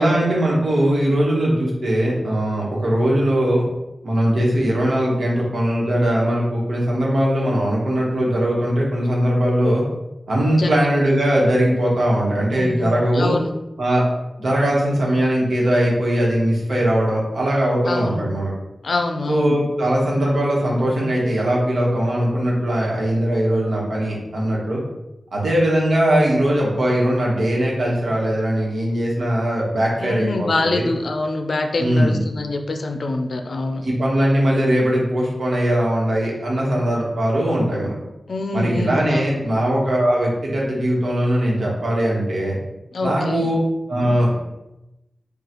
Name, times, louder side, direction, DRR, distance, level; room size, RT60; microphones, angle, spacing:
voice 1, 0.0-3.6 4.0-9.8 10.3-13.3 13.8-14.0 14.4-18.5 19.3-24.8 25.3-30.9 31.8-32.2 33.8-37.9 38.5-42.6 43.0-43.6 43.9-44.3, equal, 80° right, -4 dB, 1.2 m, -20 dB
voice 2, 12.5-13.5 17.9-18.2 18.8-19.6 30.0-33.8 38.3-39.2 42.9-43.5, left 2 dB, 70° left, 4 dB, 0.4 m, -25 dB
5.3 x 2.3 x 3.0 m, 0.94 s
wide cardioid pair, 110°, 0 cm